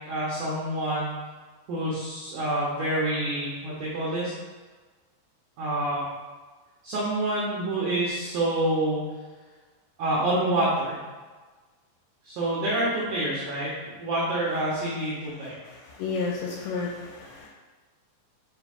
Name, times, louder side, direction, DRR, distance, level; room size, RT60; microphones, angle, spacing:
voice 1, 0.1-1.1 1.7-4.3 5.6-6.1 6.8-9.0 10.0-11.0 12.2-15.5, right 1 dB, 75° right, -8 dB, 1.9 m, -27 dB
voice 2, 14.5-14.8 15.3-15.4 15.6-17.5, left 4 dB, 80° left, -1 dB, 2.4 m, -33 dB
7.5 x 3.2 x 4.9 m, 1.3 s
omnidirectional pair, 5.4 m